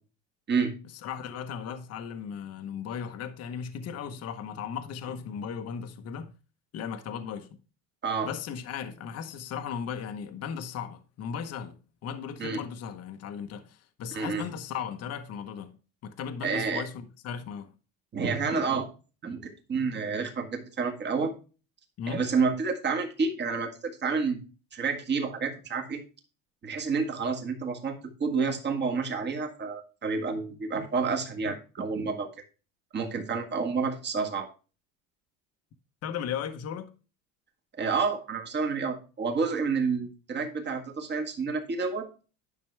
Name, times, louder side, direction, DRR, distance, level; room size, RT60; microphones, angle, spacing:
voice 1, 1.0-6.3 6.7-7.6 8.2-15.7 16.0-17.7 22.0-22.3 36.0-36.9, left 7 dB, 40° left, 1.0 m, -36 dB
voice 2, 14.1-14.4 16.4-16.8 18.1-18.9 19.2-19.4 19.7-21.3 22.1-24.4 24.7-26.0 26.6-32.3 32.9-34.5 37.8-42.1, right 5 dB, 25° right, 1.8 m, -29 dB
10.5 x 5.9 x 3.3 m
cardioid pair, 145°, 39 cm